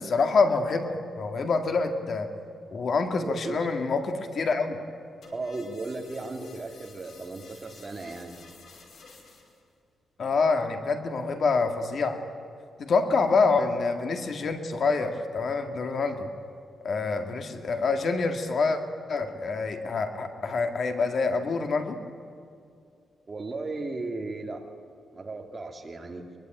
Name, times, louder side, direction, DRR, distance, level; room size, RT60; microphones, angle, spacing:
voice 1, 0.0-2.3 2.7-4.8 10.2-12.2 12.8-16.3 16.8-18.8 19.1-22.0, left 4 dB, 50° left, 6 dB, 1.9 m, -26 dB
voice 2, 3.2-3.7 5.3-8.4 23.3-24.6 25.1-26.2, right 3 dB, 25° right, 3 dB, 2.3 m, -35 dB
sound 1, 5.2-9.6, left 4 dB, 70° left, 5.4 m, -52 dB
23.0 x 22.5 x 9.2 m, 2.3 s
wide cardioid pair, 155°, 0 cm